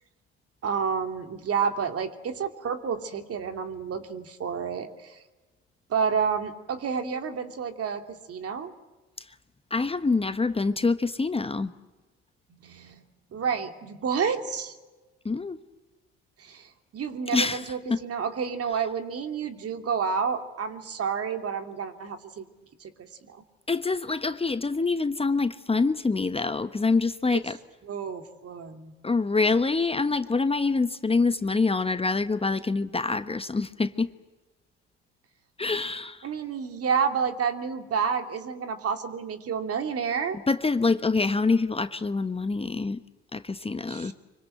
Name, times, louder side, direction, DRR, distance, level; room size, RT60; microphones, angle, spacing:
voice 1, 0.6-5.2 5.9-8.7 12.5-13.0 13.3-14.8 16.4-22.5 22.8-22.9 23.2-23.4 27.3-27.4 27.9-28.9 36.2-40.4 43.9-44.1, right 6 dB, 50° right, 7 dB, 2.8 m, -30 dB
voice 2, 9.7-11.7 15.2-15.6 17.3-17.6 17.9-18.0 23.7-27.6 29.0-34.1 35.6-36.3 40.5-43.0 43.3-44.1, left 3 dB, 20° left, 11 dB, 1.1 m, -25 dB
25.0 x 24.5 x 7.9 m, 1.2 s
hypercardioid pair, 60°, 31 cm